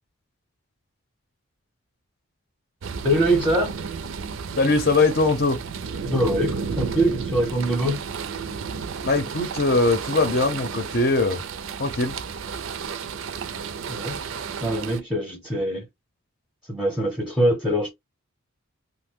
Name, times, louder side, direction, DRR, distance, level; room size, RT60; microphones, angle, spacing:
sound 1, 2.8-15.0, right 6 dB, 70° right, 0.4 m, -32 dB
voice 1, 3.0-3.7 6.0-8.0 13.9-14.2 14.6-15.8 16.7-17.9, right 1 dB, ahead, 0.6 m, -23 dB
voice 2, 4.6-5.6 9.0-11.4 11.8-12.1, left 3 dB, 50° left, 0.6 m, -21 dB
2.9 x 2.1 x 3.5 m
head